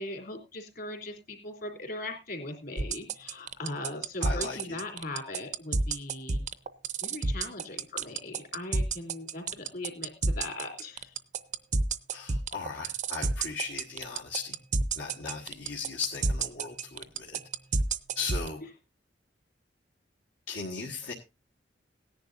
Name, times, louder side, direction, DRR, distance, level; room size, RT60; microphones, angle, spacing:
voice 1, 0.0-6.4 7.0-11.1 12.7-12.9, left 2 dB, 55° left, 4 dB, 3.4 m, -39 dB
sound 1, 2.8-18.5, right 3 dB, 40° right, 0.6 m, -28 dB
voice 2, 4.2-4.6 12.1-14.5 15.0-17.4 18.1-18.6 20.5-21.1, left 4 dB, 75° left, -2 dB, 1.5 m, -37 dB
17.5 x 10.5 x 2.6 m, 0.25 s
head